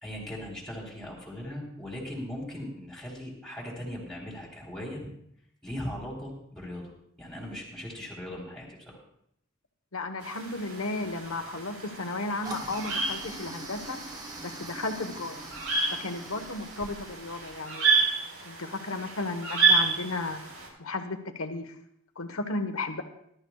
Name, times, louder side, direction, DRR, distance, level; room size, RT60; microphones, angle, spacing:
voice 1, 0.0-5.1 5.6-6.9 7.2-9.0, left 1 dB, ahead, -3 dB, 3.7 m, -39 dB
voice 2, 9.9-14.0 14.4-15.4 16.0-18.0 18.4-20.4 20.8-21.7 22.2-23.0, left 2 dB, 80° left, 7 dB, 1.3 m, -34 dB
sound 1, 10.2-20.7, right 4 dB, 90° right, 4.4 m, -30 dB
Toilet flush, 12.4-17.6, right 2 dB, 15° right, 1.1 m, -43 dB
20.5 x 12.5 x 2.4 m, 0.73 s
head